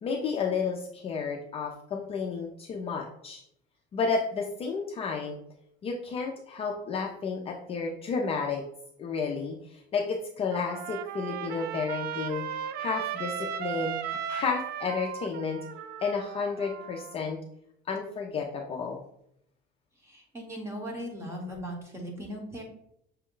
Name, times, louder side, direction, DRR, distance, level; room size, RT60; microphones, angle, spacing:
voice 1, 0.0-3.4 3.9-5.4 5.8-8.6 9.0-12.4 12.8-15.6 16.0-17.4 17.9-19.0, left 5 dB, 30° left, 1 dB, 0.4 m, -31 dB
Trumpet, 10.5-17.1, right 9 dB, 55° right, 0.4 m, -36 dB
voice 2, 20.0-22.6, equal, 15° right, 0 dB, 1.0 m, -38 dB
6.0 x 2.2 x 3.7 m, 0.73 s
cardioid pair, 155°, 20 cm